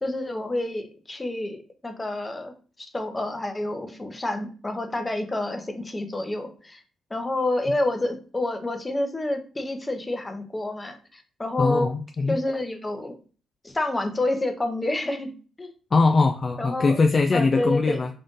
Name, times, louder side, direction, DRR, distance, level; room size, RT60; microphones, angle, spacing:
voice 1, 0.0-1.6 1.8-6.8 7.1-11.9 12.3-13.1 13.6-15.3 15.6-15.7 16.6-17.0 17.3-18.1, left 1 dB, 20° left, 6 dB, 0.8 m, -28 dB
voice 2, 11.6-12.3 15.9-18.1, left 3 dB, 40° left, 4 dB, 0.4 m, -21 dB
3.8 x 2.4 x 3.7 m, 0.39 s
supercardioid pair, 65°, 0 cm